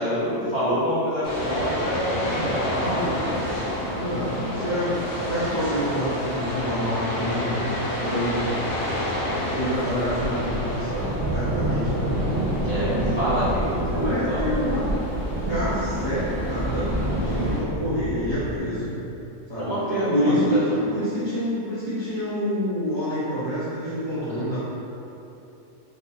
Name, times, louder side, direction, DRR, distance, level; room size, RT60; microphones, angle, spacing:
voice 1, 0.0-3.2 12.6-14.4 19.6-20.6, equal, 45° right, -14 dB, 0.7 m, -26 dB
sound 1, 1.2-17.6, left 1 dB, 80° left, 1.2 m, -30 dB
voice 2, 2.7-3.5 3.8-7.6 8.0-8.4 9.2-12.1 13.9-14.8 15.4-19.0 19.5-19.7 20.1-24.6, equal, 25° left, -15 dB, 0.9 m, -27 dB
sound 2, 9.6-18.6, right 1 dB, 70° right, 0.9 m, -28 dB
3.7 x 2.2 x 2.7 m, 2.9 s
omnidirectional pair, 1.4 m